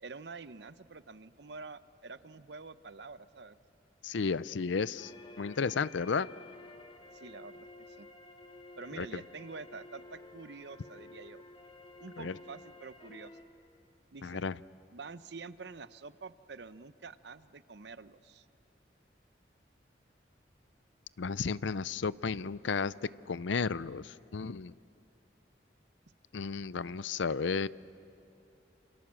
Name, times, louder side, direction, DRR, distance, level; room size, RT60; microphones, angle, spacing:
voice 1, 0.0-3.6 7.1-8.1 8.8-11.4 12.0-13.3 14.1-14.4 14.9-18.5, right 4 dB, 70° right, 13 dB, 0.8 m, -47 dB
voice 2, 4.0-5.1 5.4-6.3 9.0-9.1 12.2-12.3 14.2-14.5 21.2-22.9 23.3-24.7 26.3-27.7, left 5 dB, 90° left, 18 dB, 0.5 m, -33 dB
sound 1, 5.0-13.4, left 2 dB, 30° left, 1.9 m, -52 dB
28.5 x 28.0 x 7.5 m, 2.9 s
head